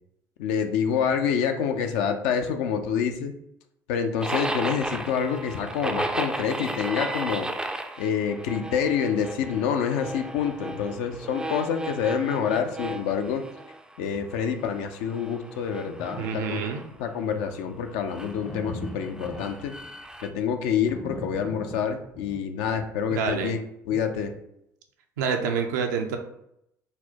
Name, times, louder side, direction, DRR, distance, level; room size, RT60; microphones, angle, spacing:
voice 1, 0.4-3.3 3.9-13.4 14.0-16.6 17.0-19.8 20.2-24.3, left 7 dB, 70° left, 6 dB, 0.4 m, -27 dB
sound 1, 4.2-14.0 14.3-16.9 18.1-20.3, right 2 dB, 10° right, 0.3 m, -35 dB
sound 2, 15.8-16.3 16.7-17.0 17.5-22.4, left 1 dB, 40° left, 0.7 m, -39 dB
voice 2, 16.2-16.8 23.1-23.6 23.9-24.0 25.2-26.2, right 6 dB, 80° right, 4 dB, 0.4 m, -27 dB
4.1 x 2.1 x 2.8 m, 0.78 s
hypercardioid pair, 60°, 10 cm